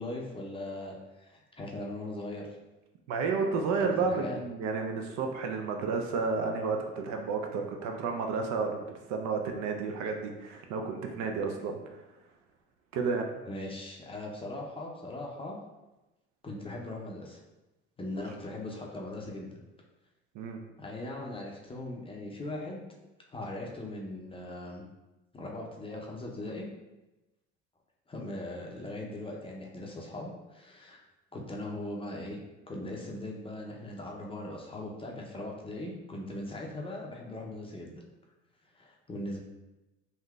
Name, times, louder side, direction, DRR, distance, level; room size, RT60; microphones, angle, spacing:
voice 1, 0.0-2.5 4.0-4.4 13.5-15.6 16.4-17.4 18.0-19.5 20.8-23.0 23.3-24.8 25.3-26.7 28.1-31.0 31.3-32.4 32.7-38.0 38.7-39.4, left 1 dB, 15° left, -2 dB, 0.6 m, -39 dB
voice 2, 3.1-11.8 12.9-13.3 20.3-20.6, right 4 dB, 55° right, 3 dB, 0.5 m, -31 dB
3.5 x 2.6 x 2.3 m, 1.0 s
hypercardioid pair, 65°, 35 cm